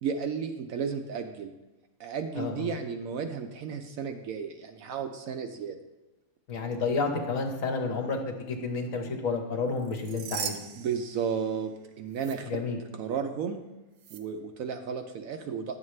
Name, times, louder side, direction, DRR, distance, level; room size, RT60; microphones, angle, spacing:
voice 1, 0.0-1.5 2.0-5.8 10.8-11.7 12.0-12.5 13.0-13.6 14.1-15.8, right 6 dB, 70° right, 6 dB, 0.9 m, -33 dB
voice 2, 2.4-2.7 6.5-10.6 12.4-12.8, left 4 dB, 60° left, 3 dB, 1.3 m, -30 dB
sound 1, 9.8-11.8 12.1-12.4 14.0-14.2, right 8 dB, 85° right, 1.3 m, -39 dB
9.9 x 7.2 x 3.2 m, 1.0 s
omnidirectional pair, 1.7 m